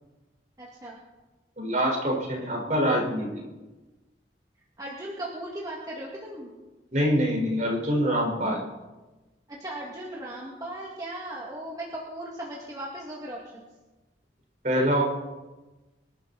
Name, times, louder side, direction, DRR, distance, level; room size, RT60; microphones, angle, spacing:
voice 1, 0.6-1.0 4.8-6.5 9.5-13.6, right 1 dB, 20° right, -4 dB, 2.1 m, -37 dB
voice 2, 1.6-3.4 6.9-8.6 14.6-15.0, equal, 45° right, -1 dB, 4.5 m, -25 dB
26.0 x 11.5 x 4.1 m, 1.2 s
head